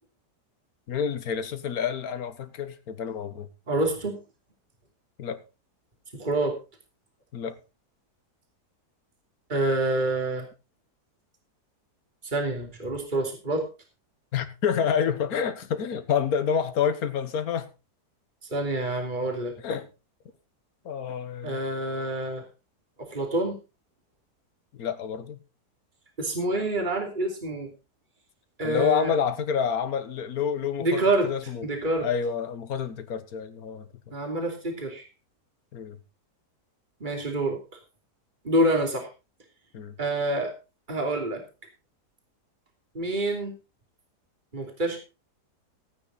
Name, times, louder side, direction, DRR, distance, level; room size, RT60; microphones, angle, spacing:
voice 1, 0.9-3.5 5.2-5.4 7.3-7.6 14.3-17.7 19.6-19.9 20.8-21.6 24.7-25.4 28.6-31.7 32.0-33.9 35.7-36.0 39.7-40.0, left 7 dB, 65° left, 1.7 m, -28 dB
voice 2, 3.7-4.2 6.1-6.6 9.5-10.4 12.2-13.7 18.5-19.5 21.4-22.4 23.0-23.6 26.2-27.7 28.6-29.1 30.8-31.3 31.6-32.1 34.1-35.0 37.0-37.6 38.4-39.1 40.0-40.5 40.9-41.4 42.9-43.5 44.5-45.0, right 1 dB, 30° right, 3.1 m, -27 dB
15.5 x 9.1 x 4.1 m
omnidirectional pair, 1.8 m